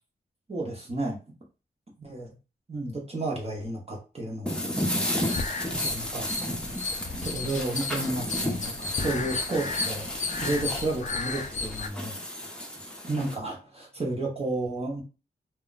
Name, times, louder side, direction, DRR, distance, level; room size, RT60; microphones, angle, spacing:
voice 1, 0.5-1.2 2.0-2.3 2.7-4.6 5.6-6.3 7.2-12.1 13.0-15.0, right 2 dB, 35° right, -2 dB, 0.9 m, -32 dB
sound 1, 4.5-13.4, equal, 5° left, 0.7 m, -33 dB
sound 2, 5.2-11.9, left 4 dB, 45° left, 0.4 m, -34 dB
2.2 x 2.1 x 3.9 m, 0.32 s
wide cardioid pair, 90°, 18 cm